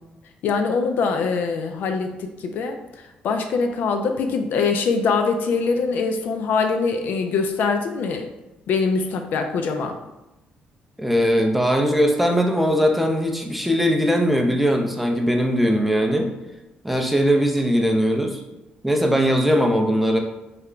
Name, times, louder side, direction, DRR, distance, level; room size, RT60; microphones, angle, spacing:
voice 1, 0.4-2.8 3.2-8.3 8.7-9.9, left 4 dB, 70° left, 5 dB, 0.4 m, -23 dB
voice 2, 11.0-16.3 16.8-18.4 18.8-20.2, equal, 5° right, 2 dB, 0.5 m, -20 dB
3.2 x 2.2 x 3.8 m, 0.98 s
cardioid pair, 105°, 3 cm